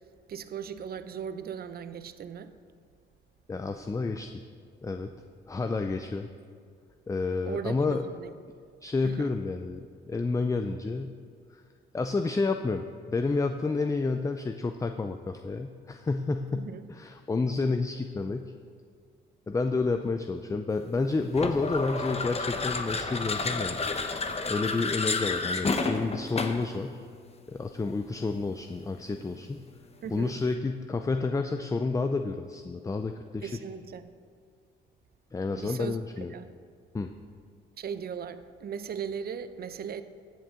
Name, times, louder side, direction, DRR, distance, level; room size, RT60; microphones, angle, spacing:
voice 1, 0.3-2.6 7.4-8.3 9.0-9.3 16.5-16.9 30.0-30.4 33.4-34.1 35.5-36.5 37.8-40.0, right 7 dB, 50° right, 12 dB, 0.6 m, -38 dB
voice 2, 3.5-4.4 4.8-5.1 5.5-6.3 7.1-8.0 8.8-11.1 11.5-11.6 11.9-18.5 19.5-23.9 24.5-27.0 27.5-29.7 30.1-33.5 35.3-36.3 36.9-37.1, left 3 dB, 15° left, 7 dB, 0.4 m, -30 dB
sound 1, 21.3-26.7, left 4 dB, 30° left, 0.9 m, -30 dB
15.5 x 7.5 x 3.7 m, 2.1 s
cardioid pair, 90°, 20 cm